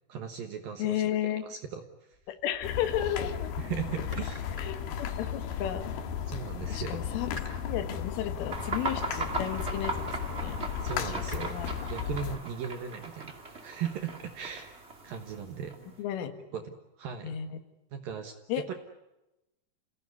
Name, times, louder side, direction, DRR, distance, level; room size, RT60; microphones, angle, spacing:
voice 1, 0.1-1.8 3.6-4.4 6.3-7.0 10.8-11.6 11.9-13.3 13.6-15.8 16.5-16.6 17.0-17.4 17.9-18.7, right 8 dB, 65° right, 5 dB, 2.4 m, -38 dB
voice 2, 0.8-1.4 2.3-3.5 4.6-5.9 6.7-7.3 7.6-10.6 11.2-11.7 16.0-16.3 17.2-17.6 18.5-18.7, left 11 dB, 80° left, 7 dB, 4.2 m, -33 dB
sound 1, 2.1-3.3 3.8-5.9 6.6-11.5, left 1 dB, 5° left, 5.1 m, -52 dB
sound 2, 2.6-12.4, left 8 dB, 65° left, 2.9 m, -35 dB
sound 3, 8.5-16.0, right 2 dB, 25° right, 1.3 m, -38 dB
30.0 x 17.0 x 9.5 m, 0.96 s
omnidirectional pair, 5.6 m